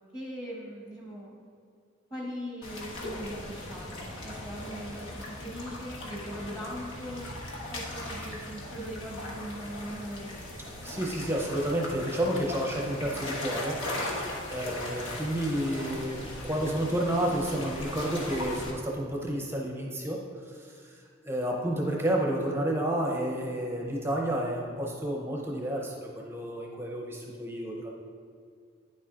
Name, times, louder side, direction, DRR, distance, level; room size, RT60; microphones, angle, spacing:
voice 1, 0.1-1.3 2.1-7.3 7.7-10.4, equal, 20° left, -4 dB, 1.2 m, -40 dB
sound 1, 2.6-18.7, left 1 dB, 75° left, 1.3 m, -38 dB
voice 2, 10.8-27.9, right 1 dB, 10° right, -2 dB, 0.6 m, -31 dB
9.7 x 7.1 x 2.5 m, 2.2 s
head